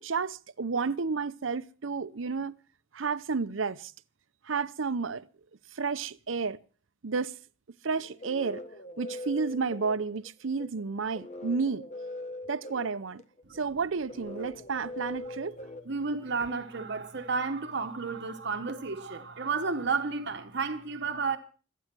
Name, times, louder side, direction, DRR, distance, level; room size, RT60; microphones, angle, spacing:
voice 1, 0.0-2.5 2.9-3.9 4.4-5.3 5.7-6.6 7.0-7.3 7.8-8.6 9.0-11.8 12.5-13.2 13.5-15.6, right 5 dB, 85° right, 0.7 m, -31 dB
sound 1, 7.9-16.6, left 1 dB, 40° left, 1.3 m, -42 dB
voice 2, 15.8-21.4, right 4 dB, 60° right, 1.3 m, -32 dB
25.0 x 9.3 x 6.1 m
head